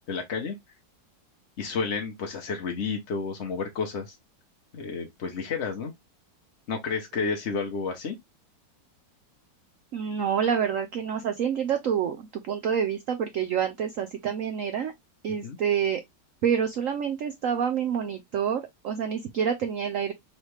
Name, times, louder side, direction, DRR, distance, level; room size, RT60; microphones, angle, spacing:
voice 1, 0.1-0.6 1.6-4.2 4.7-5.9 6.7-8.2 15.4-15.6, left 5 dB, 60° left, 0.7 m, -31 dB
voice 2, 9.9-14.9 15.2-16.0 16.4-20.1, right 8 dB, 80° right, 0.7 m, -27 dB
4.0 x 3.3 x 3.1 m
omnidirectional pair, 2.1 m